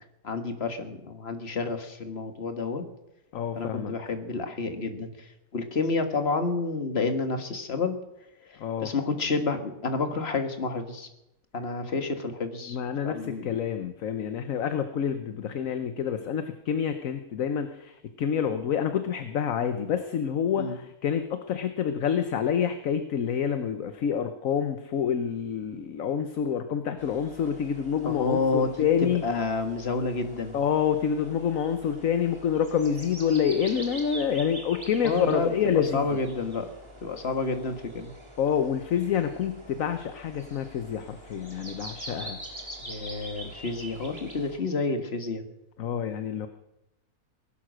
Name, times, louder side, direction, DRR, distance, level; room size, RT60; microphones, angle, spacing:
voice 1, 0.2-2.8 3.6-8.0 8.5-11.1 11.5-12.8 13.0-13.5 20.6-20.8 28.0-28.7 29.0-30.6 35.0-36.7 37.0-38.1 42.8-45.4, left 4 dB, 40° left, 7 dB, 1.9 m, -29 dB
voice 2, 3.3-3.9 8.6-8.9 12.7-29.2 30.5-36.0 38.4-42.4 45.8-46.5, left 8 dB, 60° left, 9 dB, 1.2 m, -27 dB
sound 1, 27.0-44.6, right 1 dB, 15° right, 3.0 m, -45 dB
19.5 x 11.5 x 6.3 m, 0.87 s
omnidirectional pair, 1.6 m